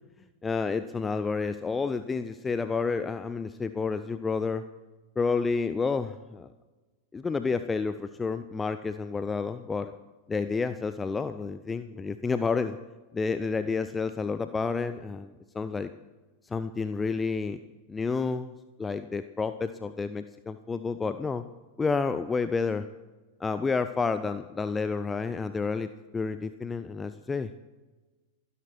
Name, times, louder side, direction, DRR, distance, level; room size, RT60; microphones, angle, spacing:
voice 1, 0.4-4.6 5.2-6.5 7.1-9.9 10.3-12.8 13.1-15.9 16.5-17.6 17.9-18.5 18.8-21.4 21.8-22.9 23.4-27.6, left 4 dB, 15° left, 11 dB, 0.6 m, -30 dB
27.5 x 11.0 x 4.5 m, 1.2 s
figure-of-eight pair, 90°, 0 cm